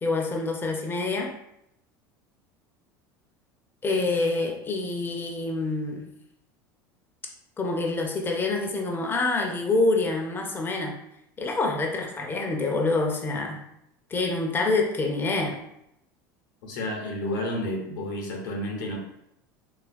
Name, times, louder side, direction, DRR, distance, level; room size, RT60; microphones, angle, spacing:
voice 1, 0.0-1.3 3.8-6.1 7.6-11.0 11.4-13.6 14.1-15.6, left 3 dB, 20° left, 1 dB, 0.5 m, -26 dB
voice 2, 16.6-19.0, left 1 dB, 75° left, 1 dB, 0.7 m, -31 dB
2.7 x 2.4 x 2.5 m, 0.78 s
hypercardioid pair, 85°, 11 cm